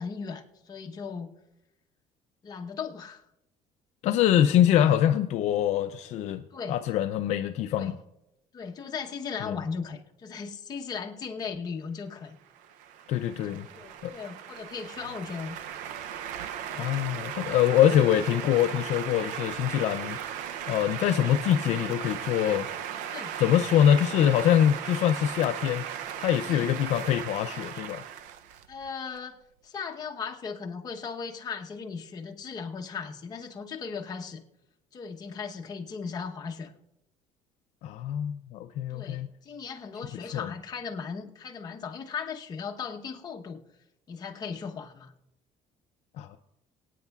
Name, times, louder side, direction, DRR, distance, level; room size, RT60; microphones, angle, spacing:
voice 1, 0.0-1.3 2.4-3.2 6.5-6.8 7.8-7.9 8.5-12.4 13.5-15.6 17.8-18.0 23.1-23.3 26.4-26.6 28.7-34.4 34.9-36.7 38.9-43.6 44.1-45.1, left 5 dB, 30° left, 0.9 m, -37 dB
voice 2, 4.0-6.4 6.7-8.0 9.4-9.6 13.1-13.7 14.0-14.1 16.7-20.2 20.7-22.7 23.4-25.9 26.2-28.0 37.8-39.3 40.3-40.5 46.2-46.4, left 10 dB, 65° left, 0.4 m, -24 dB
sound 1, 12.5-29.2, right 9 dB, 85° right, 0.5 m, -37 dB
25.0 x 9.1 x 2.4 m
cardioid pair, 155°, 13 cm